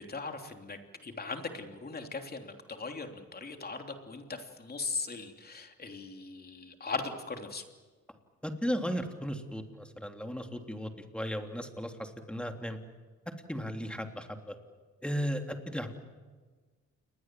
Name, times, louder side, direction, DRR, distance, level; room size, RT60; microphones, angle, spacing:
voice 1, 0.1-7.6, left 4 dB, 30° left, 5 dB, 3.3 m, -39 dB
voice 2, 8.4-12.8 13.5-14.5 15.0-15.9, equal, 5° left, 5 dB, 3.3 m, -35 dB
29.0 x 21.0 x 7.7 m, 1.4 s
cardioid pair, 90°, 30 cm